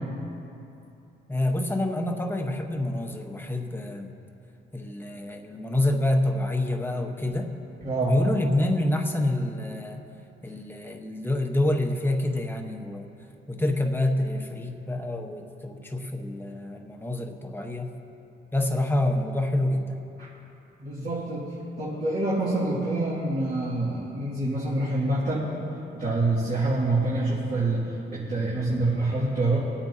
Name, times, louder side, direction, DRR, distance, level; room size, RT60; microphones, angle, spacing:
voice 1, 1.3-4.1 4.7-7.5 8.0-10.0 10.4-13.1 13.5-17.9 18.5-20.0, left 1 dB, 10° left, 2 dB, 1.1 m, -27 dB
voice 2, 7.8-8.2 10.7-10.8 20.2-20.3 20.8-25.5 25.9-27.8 28.1-29.6, right 2 dB, 45° right, -9 dB, 2.5 m, -26 dB
22.0 x 8.7 x 2.8 m, 2.8 s
cardioid pair, 90°, 20 cm